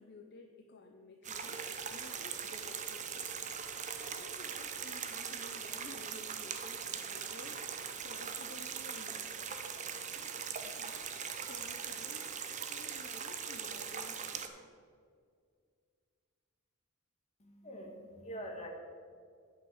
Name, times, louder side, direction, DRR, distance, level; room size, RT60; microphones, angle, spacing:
voice 1, 0.0-1.7 1.9-3.4 3.9-9.6 10.1-10.4 10.6-11.1 11.5-14.7, left 2 dB, 50° left, 4 dB, 0.6 m, -54 dB
sound 1, 1.2-14.5, right 7 dB, 35° right, 0.6 m, -41 dB
voice 2, 17.4-18.7, equal, 30° left, 1 dB, 1.5 m, -45 dB
8.6 x 5.8 x 7.8 m, 2.2 s
head